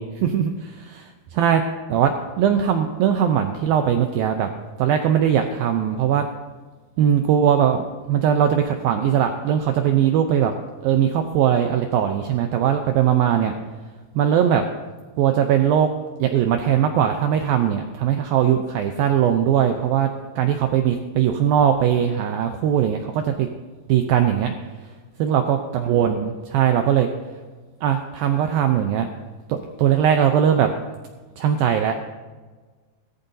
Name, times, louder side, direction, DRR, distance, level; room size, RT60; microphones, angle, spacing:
voice 1, 0.0-1.6 1.9-4.5 4.8-6.2 7.0-10.5 10.8-13.5 14.2-14.7 15.2-15.9 16.2-20.1 20.4-23.5 23.9-24.5 25.2-27.1 27.8-29.1 29.5-30.7 31.4-32.0, right 9 dB, 85° right, 5 dB, 2.1 m, -20 dB
17.5 x 14.5 x 2.7 m, 1.4 s
omnidirectional pair, 5.0 m